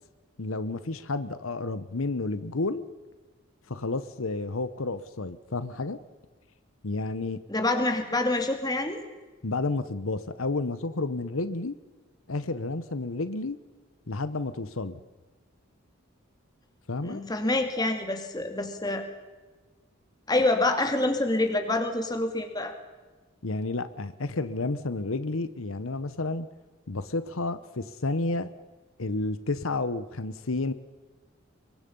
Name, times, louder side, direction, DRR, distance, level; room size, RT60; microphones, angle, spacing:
voice 1, 0.4-2.9 3.7-6.0 6.8-7.4 9.4-11.7 12.3-13.6 14.1-15.0 16.9-17.2 23.4-26.5 26.9-28.5 29.0-30.7, left 3 dB, 80° left, 13 dB, 1.0 m, -31 dB
voice 2, 7.5-9.0 17.0-19.0 20.3-22.7, left 2 dB, 20° left, 6 dB, 2.5 m, -26 dB
25.0 x 23.0 x 5.5 m, 1.3 s
head